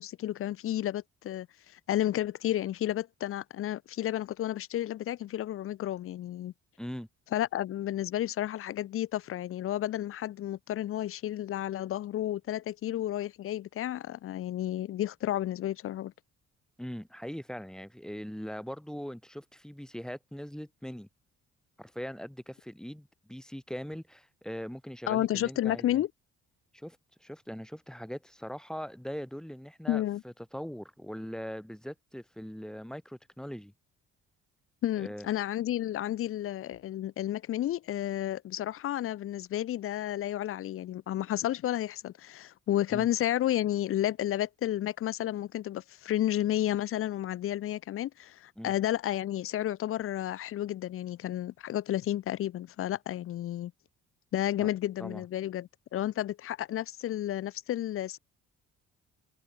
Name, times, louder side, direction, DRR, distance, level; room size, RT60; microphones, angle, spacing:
voice 1, 0.0-1.5 1.7-6.5 7.3-16.1 25.1-26.1 29.9-30.2 34.8-53.7 54.3-58.2, left 12 dB, 50° left, 0.4 m, -31 dB
voice 2, 6.8-7.1 16.8-21.1 21.8-26.0 26.7-33.7 35.0-35.3 42.9-43.1 48.6-48.7 54.6-54.7 55.0-55.3, equal, ahead, 1.7 m, -41 dB
cardioid pair, 90°, 30 cm